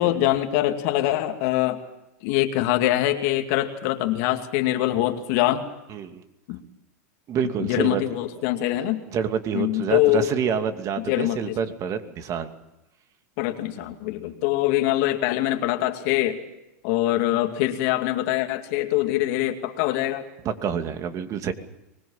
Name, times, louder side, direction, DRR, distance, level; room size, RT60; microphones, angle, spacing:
voice 1, 0.0-1.8 2.2-5.7 6.5-6.6 7.6-9.0 9.5-10.3 11.0-11.6 13.4-16.4 16.8-20.3, left 15 dB, 60° left, 5 dB, 2.3 m, -23 dB
voice 2, 5.9-6.2 7.3-8.0 9.1-12.5 20.4-21.5, right 7 dB, 40° right, 7 dB, 2.6 m, -27 dB
24.0 x 21.5 x 7.4 m, 0.94 s
hypercardioid pair, 105°, 9 cm